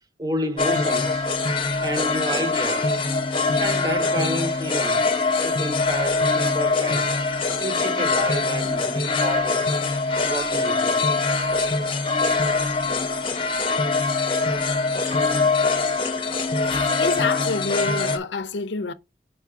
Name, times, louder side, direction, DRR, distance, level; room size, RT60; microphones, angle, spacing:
voice 1, 0.2-1.3 1.8-3.0 3.6-5.1 5.4-7.2 7.6-9.7 10.1-11.0, equal, 20° right, 0.6 m, -30 dB
sound 1, 0.6-18.2, left 3 dB, 30° left, 0.8 m, -23 dB
voice 2, 16.7-18.9, left 3 dB, 85° left, 0.6 m, -27 dB
5.7 x 5.4 x 3.6 m
head